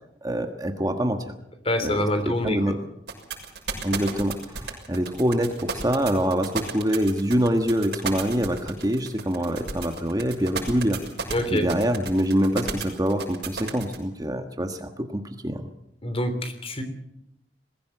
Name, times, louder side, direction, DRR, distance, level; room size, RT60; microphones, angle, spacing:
voice 1, 0.2-1.2 1.8-2.8 3.8-11.0 11.5-15.6, equal, 20° right, 6 dB, 1.4 m, -25 dB
voice 2, 1.6-2.8 11.3-11.7 16.0-16.8, left 1 dB, 35° left, 8 dB, 3.4 m, -26 dB
sound 1, 3.1-14.0, right 5 dB, 75° right, 6.5 m, -32 dB
21.5 x 16.0 x 7.9 m, 0.83 s
head